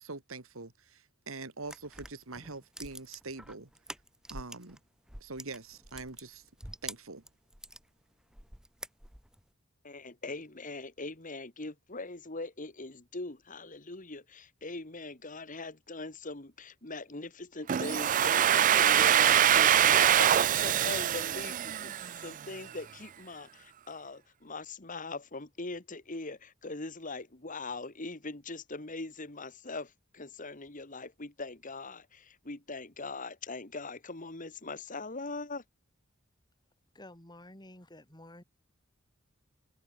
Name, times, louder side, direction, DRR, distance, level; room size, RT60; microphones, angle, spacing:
voice 1, 0.0-3.7 4.3-4.8 5.2-6.4 6.8-7.2, right 3 dB, 90° right, 2.4 m, -43 dB
sound 1, 1.6-4.8 5.1-7.8 8.3-9.4, right 1 dB, 5° right, 1.1 m, -46 dB
voice 2, 9.8-20.3 20.6-35.6, left 3 dB, 40° left, 2.1 m, -41 dB
Domestic sounds home sounds, 17.7-22.4, right 10 dB, 40° right, 0.4 m, -24 dB
voice 3, 36.9-38.4, left 1 dB, 20° left, 4.7 m, -51 dB
head